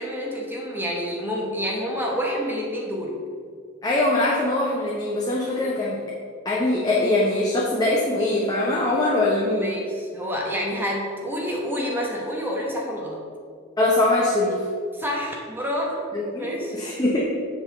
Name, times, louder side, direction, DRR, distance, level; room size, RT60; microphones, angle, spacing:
voice 1, 0.0-3.2 9.5-13.2 14.9-16.1 16.4-16.8, equal, 10° right, -2 dB, 1.0 m, -28 dB
voice 2, 3.8-6.0 6.4-9.7 13.8-14.7 16.1-17.2, left 2 dB, 20° left, -4 dB, 0.9 m, -22 dB
7.3 x 4.1 x 6.7 m, 2.1 s
head